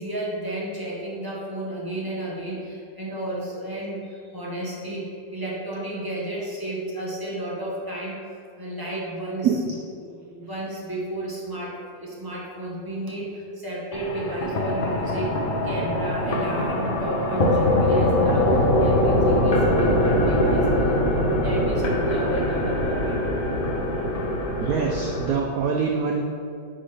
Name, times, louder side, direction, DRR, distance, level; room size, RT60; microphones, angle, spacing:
voice 1, 0.0-8.2 8.6-9.5 10.0-15.3 15.6-23.2, right 1 dB, 15° right, -5 dB, 0.8 m, -32 dB
sound 1, 13.9-25.3, left 1 dB, 55° left, 0.6 m, -22 dB
voice 2, 24.6-26.2, right 6 dB, 80° right, 1 dB, 0.8 m, -24 dB
10.0 x 3.8 x 3.3 m, 2.5 s
omnidirectional pair, 2.0 m